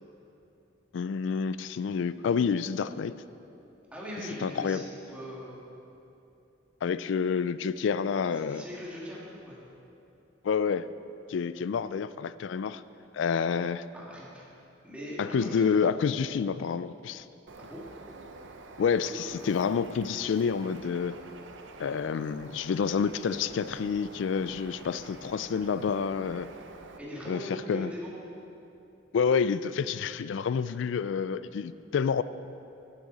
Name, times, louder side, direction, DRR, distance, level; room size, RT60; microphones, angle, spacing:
voice 1, 0.9-3.1 4.4-4.8 6.8-8.6 10.4-10.9 11.3-12.8 13.1-13.8 15.2-17.2 18.8-21.2 21.8-26.5 27.3-27.4 27.7-27.9 29.1-32.2, left 6 dB, 70° left, 15 dB, 0.3 m, -28 dB
voice 2, 3.9-5.6 8.3-9.6 13.9-14.5 14.8-15.8 17.6-17.8 19.0-19.5 27.0-28.1, equal, 5° right, -6 dB, 2.2 m, -41 dB
Bird, 17.5-27.0, right 3 dB, 70° right, 0.8 m, -48 dB
15.0 x 8.7 x 4.1 m, 2.8 s
head